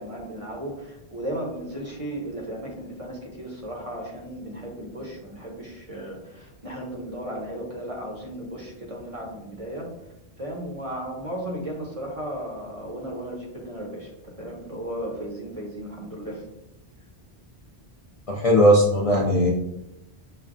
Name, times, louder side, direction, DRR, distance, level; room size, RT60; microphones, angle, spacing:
voice 1, 0.0-9.9 10.4-16.4, right 1 dB, 40° right, -1 dB, 0.7 m, -35 dB
voice 2, 18.3-19.5, equal, 50° left, -3 dB, 0.4 m, -18 dB
6.2 x 2.1 x 2.5 m, 0.87 s
omnidirectional pair, 1.1 m